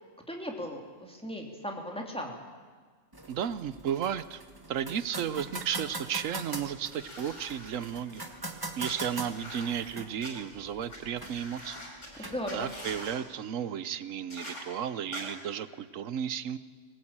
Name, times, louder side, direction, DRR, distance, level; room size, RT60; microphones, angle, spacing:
voice 1, 0.3-2.3 12.2-12.7, equal, 5° left, 1 dB, 2.9 m, -37 dB
sound 1, 3.1-13.1, right 2 dB, 15° right, 1.6 m, -43 dB
voice 2, 3.3-4.4 4.7-8.3 8.8-11.8 12.2-16.6, right 9 dB, 90° right, 15 dB, 1.2 m, -34 dB
sound 2, 6.9-8.3 8.8-10.3 10.9-11.0 11.2-12.1 12.4-13.2 14.3-14.6 15.1-15.2, left 1 dB, 70° left, 6.1 m, -44 dB
20.5 x 18.5 x 8.8 m, 1.5 s
omnidirectional pair, 1.3 m